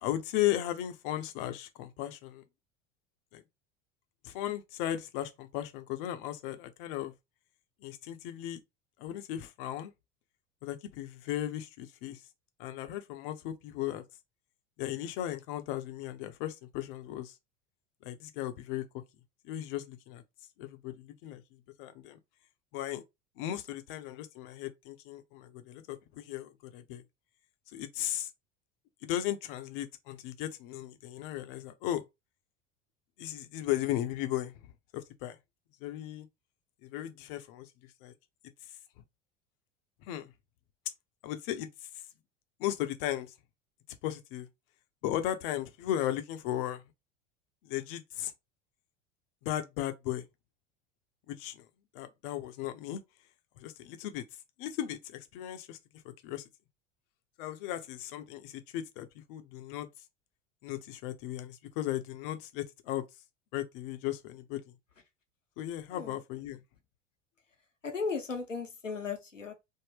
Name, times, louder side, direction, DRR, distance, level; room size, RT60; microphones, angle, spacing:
voice 1, 0.0-2.4 3.3-3.4 4.2-7.1 7.8-8.6 9.0-9.9 10.6-12.2 12.6-14.0 14.8-17.4 18.0-18.8 19.4-20.2 20.6-21.4 21.8-22.2 22.7-23.0 23.4-27.0 27.7-28.3 29.0-32.1 33.2-35.4 35.8-36.3 36.8-37.7 38.0-38.1 40.1-40.3 41.2-41.9 42.6-43.3 44.0-44.5 45.0-46.8 47.6-48.3 49.4-50.3 51.3-51.7 51.9-53.0 53.6-54.2 54.6-55.8 56.0-56.4 57.4-59.9 60.6-63.0 63.5-64.7 65.6-66.6, left 12 dB, 45° left, 0.6 m, -36 dB
voice 2, 67.8-69.5, left 5 dB, 90° left, 0.7 m, -36 dB
3.5 x 2.0 x 3.3 m
figure-of-eight pair, 75°, 37 cm